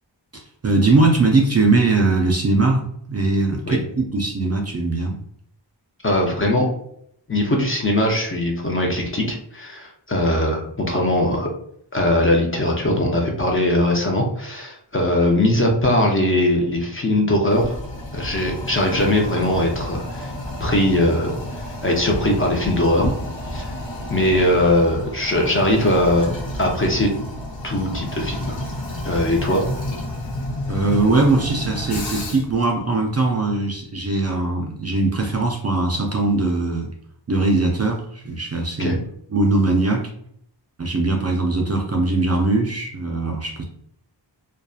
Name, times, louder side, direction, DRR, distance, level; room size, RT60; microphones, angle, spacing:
voice 1, 0.3-5.2 30.7-36.9 37.3-39.0 39.3-40.1 40.8-43.6, right 2 dB, 35° right, 0 dB, 0.4 m, -20 dB
voice 2, 6.0-6.7 7.3-11.5 11.9-17.7 18.1-20.3 20.6-21.3 21.8-23.1 23.5-23.7 24.1-26.3 26.6-27.1 27.6-28.6 29.0-29.6 38.8-38.9, left 1 dB, 30° left, 0 dB, 0.6 m, -20 dB
Toilet flush, 17.5-32.6, left 1 dB, 75° left, 0.7 m, -30 dB
2.6 x 2.3 x 2.4 m, 0.68 s
wide cardioid pair, 75°, 46 cm